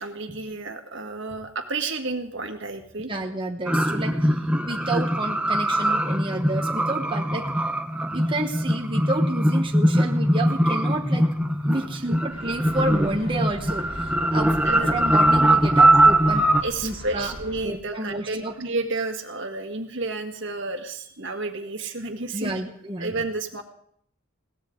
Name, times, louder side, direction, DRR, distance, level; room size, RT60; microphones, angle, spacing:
voice 1, 0.0-3.1 14.7-14.9 16.6-22.5 23.0-23.6, right 3 dB, 60° right, 5 dB, 1.8 m, -31 dB
voice 2, 3.1-7.5 8.1-11.3 11.6-16.5 16.8-17.3 17.6-18.5 22.3-23.2, right 2 dB, 25° right, 2 dB, 1.2 m, -30 dB
sound 1, 3.7-16.6, right 1 dB, 5° right, 0.8 m, -21 dB
sound 2, 12.3-17.7, left 1 dB, 75° left, 3.6 m, -39 dB
21.5 x 17.5 x 3.8 m, 0.67 s
head